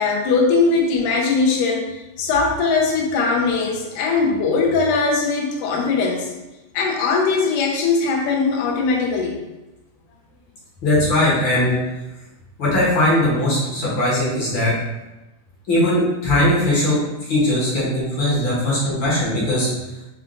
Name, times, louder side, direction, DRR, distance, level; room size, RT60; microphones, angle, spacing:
voice 1, 0.0-6.3 6.7-9.4, left 4 dB, 75° left, -1 dB, 2.2 m, -20 dB
voice 2, 10.8-11.7 12.6-14.7 15.7-17.0 17.3-19.7, left 1 dB, 55° left, -7 dB, 1.4 m, -19 dB
5.6 x 2.4 x 3.7 m, 1.0 s
omnidirectional pair, 3.7 m